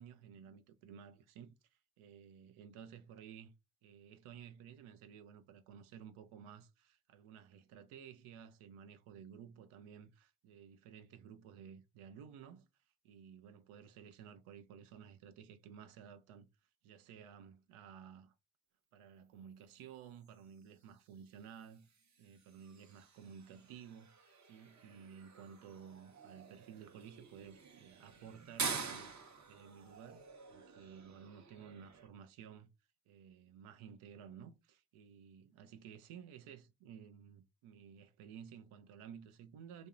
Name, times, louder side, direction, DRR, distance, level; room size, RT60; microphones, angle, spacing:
voice 1, 0.0-3.5 3.8-12.7 13.0-16.5 16.8-18.3 18.9-21.9 22.2-32.7 33.1-39.9, right 8 dB, 80° right, 0.6 m, -54 dB
sound 1, 20.1-32.1, right 5 dB, 35° right, 0.7 m, -48 dB
2.7 x 2.0 x 2.3 m
supercardioid pair, 50°, 49 cm